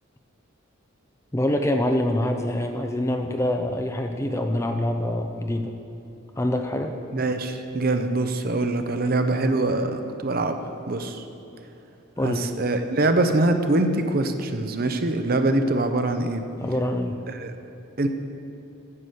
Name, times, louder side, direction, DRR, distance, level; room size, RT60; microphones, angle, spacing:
voice 1, 1.3-5.7 6.4-7.0 12.2-12.4 16.6-17.2, left 1 dB, 15° left, 5 dB, 0.5 m, -25 dB
voice 2, 7.1-10.6 10.9-11.3 12.2-16.4 17.3-17.5 18.0-18.1, right 2 dB, 45° right, 7 dB, 0.7 m, -24 dB
9.6 x 6.8 x 7.8 m, 3.0 s
head